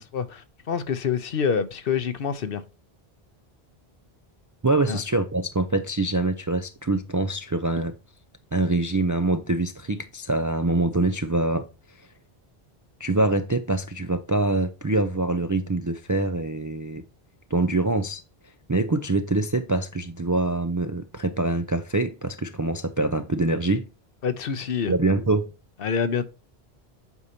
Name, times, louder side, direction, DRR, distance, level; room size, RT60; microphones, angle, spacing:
voice 1, 0.0-2.6 4.9-5.0 24.2-24.9 25.8-26.2, left 6 dB, 65° left, 0.9 m, -26 dB
voice 2, 4.6-7.9 8.5-11.7 13.0-17.0 17.5-18.2 18.7-23.9 24.9-25.5, right 2 dB, 30° right, 0.3 m, -24 dB
8.2 x 5.4 x 2.8 m
omnidirectional pair, 1.1 m